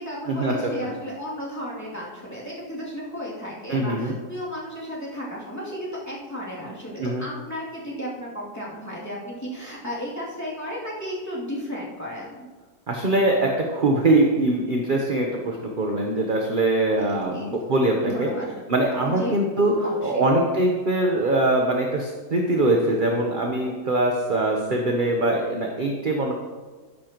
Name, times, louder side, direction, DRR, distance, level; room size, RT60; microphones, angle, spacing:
voice 1, 0.0-12.5 17.1-17.5 18.0-18.5 19.0-19.4 19.8-20.3, equal, 10° left, -7 dB, 2.6 m, -34 dB
voice 2, 3.7-4.1 7.0-7.2 12.9-18.3 18.7-19.7 20.0-26.3, right 2 dB, 40° right, 0 dB, 0.8 m, -22 dB
12.5 x 10.0 x 3.0 m, 1.3 s
omnidirectional pair, 2.0 m